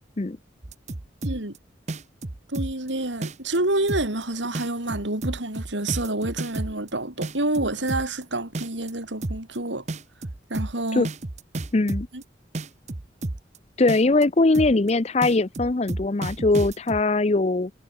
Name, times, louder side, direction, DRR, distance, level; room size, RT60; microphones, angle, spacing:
sound 1, 0.6-1.6 1.9-2.9 3.2-3.6 3.9-4.2 4.5-6.9 7.2-8.2 8.5-8.9 9.2-9.6 9.9-12.2 12.5-13.6 13.9-14.2 14.5-14.9 15.2-17.0, right 2 dB, 40° right, 0.9 m, -31 dB
voice 1, 1.2-1.6 2.5-9.8 10.5-11.1 12.1-12.2, right 2 dB, 85° right, 4.6 m, -28 dB
voice 2, 11.7-12.1 13.8-17.7, left 2 dB, 35° left, 0.6 m, -21 dB
head